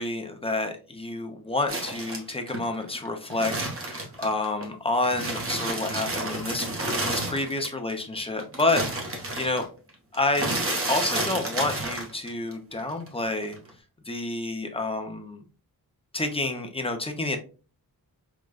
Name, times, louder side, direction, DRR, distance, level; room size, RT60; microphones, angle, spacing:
voice 1, 0.0-6.6 7.0-9.6 10.1-10.5 10.9-13.6 14.1-15.4 16.1-17.4, left 2 dB, 15° left, 5 dB, 0.4 m, -29 dB
sound 1, 1.7-4.7 5.0-7.9 8.2-12.5 12.8-13.7, right 2 dB, 35° right, 0.8 m, -31 dB
4.8 x 2.1 x 2.2 m, 0.36 s
wide cardioid pair, 170°, 38 cm